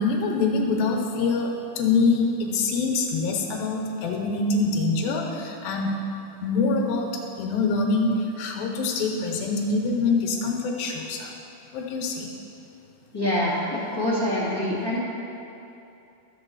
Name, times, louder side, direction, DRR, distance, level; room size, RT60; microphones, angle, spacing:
voice 1, 0.0-6.0 6.4-11.3 11.7-12.3, left 3 dB, 80° left, 0 dB, 2.8 m, -25 dB
voice 2, 13.1-15.0, left 1 dB, 10° left, -10 dB, 1.6 m, -25 dB
13.5 x 4.5 x 7.0 m, 2.8 s
omnidirectional pair, 4.1 m